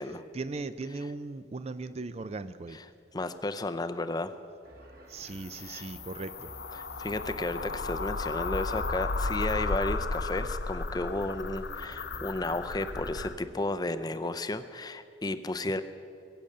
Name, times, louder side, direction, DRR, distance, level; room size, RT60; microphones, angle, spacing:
voice 1, 0.3-2.8 5.1-6.5, right 3 dB, 35° right, 12 dB, 0.4 m, -38 dB
voice 2, 3.1-4.3 5.7-5.9 6.7-15.8, left 2 dB, 20° left, 10 dB, 0.5 m, -33 dB
sound 1, 4.6-13.3, right 1 dB, 50° right, 1.8 m, -51 dB
sound 2, 5.2-13.3, left 3 dB, 60° left, 0.7 m, -34 dB
21.5 x 8.7 x 6.6 m, 2.6 s
head